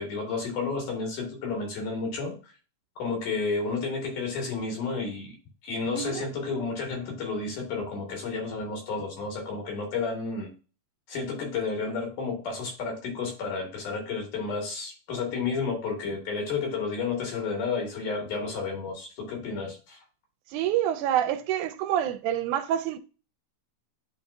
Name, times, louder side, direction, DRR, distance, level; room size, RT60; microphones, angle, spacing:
voice 1, 0.0-2.4 3.0-5.4 5.6-10.5 11.1-20.0, left 4 dB, 80° left, 3.6 m, -31 dB
voice 2, 5.9-6.3 20.5-23.0, right 11 dB, 85° right, 2.1 m, -27 dB
10.5 x 3.6 x 2.6 m
omnidirectional pair, 3.5 m